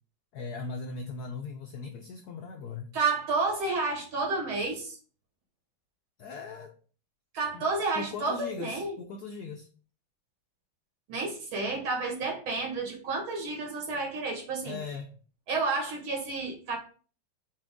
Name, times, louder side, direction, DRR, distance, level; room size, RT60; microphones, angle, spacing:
voice 1, 0.3-2.9 6.2-6.7 7.5-7.7 7.9-9.7 14.6-15.1, left 4 dB, 80° left, 4 dB, 0.8 m, -39 dB
voice 2, 2.9-5.0 7.3-9.0 11.1-14.8 15.5-16.8, right 3 dB, 85° right, 1 dB, 2.4 m, -30 dB
5.9 x 2.4 x 3.6 m, 0.40 s
omnidirectional pair, 2.3 m